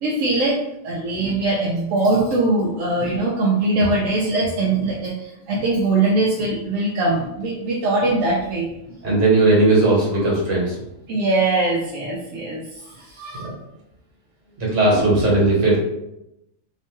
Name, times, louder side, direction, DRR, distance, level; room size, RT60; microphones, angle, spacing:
voice 1, 0.0-8.7 11.1-13.5, right 2 dB, 85° right, -4 dB, 1.0 m, -22 dB
voice 2, 9.0-10.8 13.3-13.5 14.6-15.8, right 2 dB, 70° right, -5 dB, 1.5 m, -17 dB
2.9 x 2.2 x 3.0 m, 0.87 s
omnidirectional pair, 1.3 m